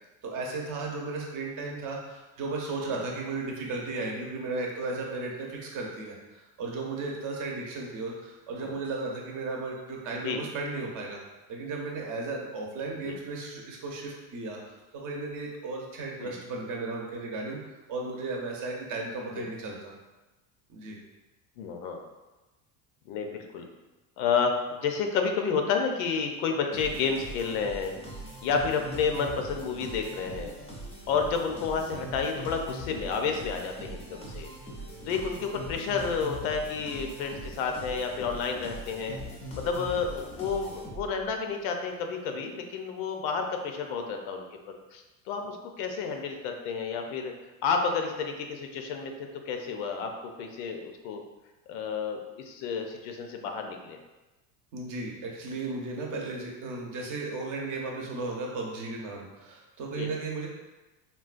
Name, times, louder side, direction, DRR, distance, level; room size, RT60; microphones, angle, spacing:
voice 1, 0.2-11.2 11.5-14.6 14.9-17.6 17.9-19.9 20.7-21.0 54.7-60.5, right 3 dB, 50° right, -1 dB, 0.7 m, -35 dB
voice 2, 21.6-22.0 23.1-23.7 24.2-24.5 24.8-27.9 28.4-30.5 31.1-34.5 35.1-39.2 39.6-47.3 47.6-49.1 49.5-50.1 50.4-51.2 51.7-54.0 60.0-60.1, left 5 dB, 80° left, 4 dB, 0.6 m, -30 dB
sound 1, 26.7-41.3, equal, 15° left, 0.5 m, -41 dB
3.7 x 2.2 x 2.4 m, 1.1 s
cardioid pair, 140°, 40 cm